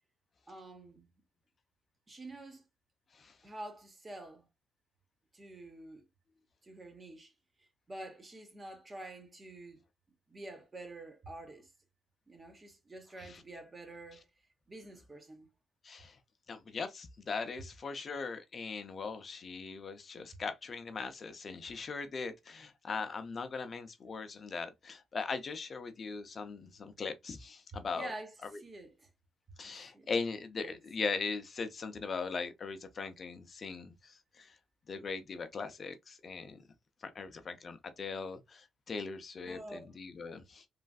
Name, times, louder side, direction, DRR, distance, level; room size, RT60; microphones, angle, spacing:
voice 1, 0.5-1.2 2.1-2.7 3.4-4.5 5.3-6.0 6.6-7.3 7.9-9.8 10.3-11.7 12.3-14.3 14.7-15.5 27.9-29.1 29.6-30.1 30.6-30.8 39.5-39.9, right 1 dB, 25° right, 0.9 m, -48 dB
voice 2, 15.8-16.2 16.5-28.1 28.5-28.6 29.6-34.6 34.9-36.6 37.0-40.7, left 4 dB, 40° left, 0.4 m, -40 dB
3.1 x 2.4 x 2.3 m
cardioid pair, 90°, 0 cm